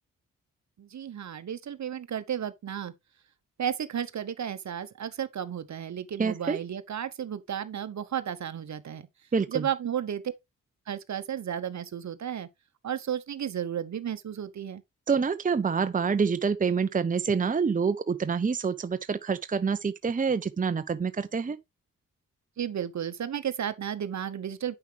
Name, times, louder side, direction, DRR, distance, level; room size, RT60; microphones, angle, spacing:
voice 1, 0.8-2.9 3.6-9.1 9.5-10.3 10.9-12.5 12.8-14.8 22.6-24.8, right 9 dB, 55° right, 1.0 m, -33 dB
voice 2, 6.2-6.6 9.3-9.7 15.1-21.6, right 5 dB, 25° right, 0.7 m, -27 dB
8.7 x 5.7 x 3.4 m
supercardioid pair, 50°, 33 cm